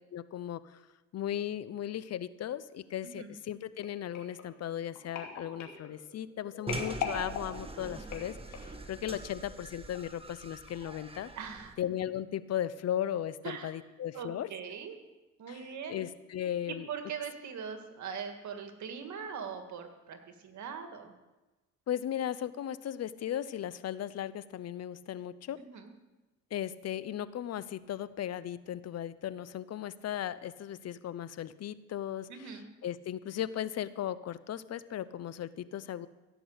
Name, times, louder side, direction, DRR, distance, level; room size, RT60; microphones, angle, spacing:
voice 1, 0.1-0.8 1.1-11.3 11.8-14.5 15.5-16.9 21.9-25.6 26.5-32.5 32.8-36.1, left 11 dB, 55° left, 16 dB, 0.7 m, -37 dB
sound 1, 3.8-8.9 9.5-9.7 10.0-10.1, left 6 dB, 85° left, 2.6 m, -41 dB
sound 2, 6.7-11.7, right 2 dB, 20° right, 1.4 m, -43 dB
voice 2, 11.3-11.8 13.4-13.7 14.1-15.0 15.4-16.0 16.7-20.2 20.4-21.1 25.6-25.9 32.3-32.6, right 6 dB, 70° right, 6 dB, 1.9 m, -41 dB
16.0 x 6.0 x 8.0 m, 1.1 s
cardioid pair, 90°, 30 cm